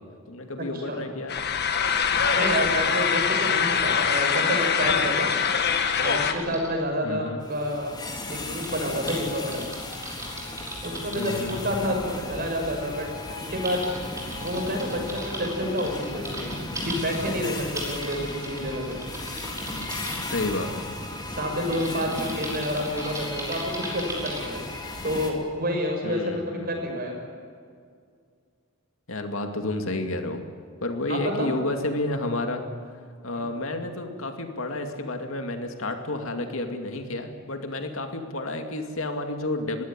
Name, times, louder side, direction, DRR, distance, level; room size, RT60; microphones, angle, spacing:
voice 1, 0.3-1.4 7.0-7.4 11.2-11.6 20.3-20.8 26.0-26.8 29.1-30.4 30.8-32.7 33.2-39.8, left 2 dB, 70° left, 5 dB, 2.4 m, -30 dB
sound 1, 1.3-6.3, left 6 dB, 50° left, 1.7 m, -23 dB
voice 2, 2.3-5.3 6.0-7.9 8.3-9.6 10.8-13.1 13.3-13.8 14.4-16.5 16.8-19.0 21.3-23.6 23.9-24.6 25.0-27.2 31.1-31.5 33.3-33.4 38.1-38.2, equal, 45° right, 2 dB, 6.4 m, -29 dB
Typing, 5.3-6.7 8.6-11.6 12.7-12.8 13.2-20.2 21.7-24.5, right 1 dB, 15° right, 5.7 m, -38 dB
sound 2, 7.4-25.3, left 2 dB, 20° left, 3.0 m, -36 dB
22.0 x 16.5 x 9.9 m, 2.1 s
head